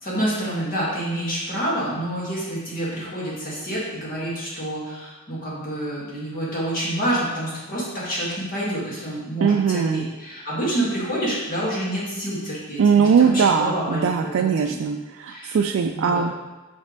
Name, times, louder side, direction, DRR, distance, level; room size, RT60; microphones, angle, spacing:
voice 1, 0.0-14.7 15.3-15.6 15.9-16.2, right 1 dB, 40° left, -7 dB, 2.0 m, -28 dB
voice 2, 9.4-10.1 12.8-16.4, right 6 dB, 65° right, 4 dB, 0.3 m, -20 dB
5.2 x 5.2 x 3.9 m, 1.1 s
head